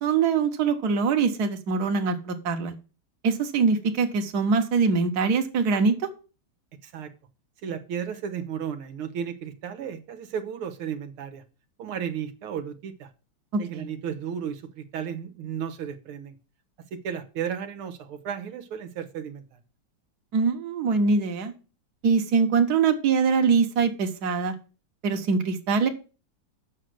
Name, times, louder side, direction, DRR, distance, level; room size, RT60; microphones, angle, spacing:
voice 1, 0.0-2.7 3.2-5.9 13.5-13.9 20.3-21.5 22.0-24.5 25.0-25.9, right 5 dB, 50° right, 5 dB, 1.6 m, -23 dB
voice 2, 7.6-11.4 11.8-13.1 13.6-16.4 16.9-19.6, right 8 dB, 85° right, 8 dB, 2.0 m, -34 dB
7.4 x 6.4 x 7.7 m, 0.34 s
omnidirectional pair, 2.3 m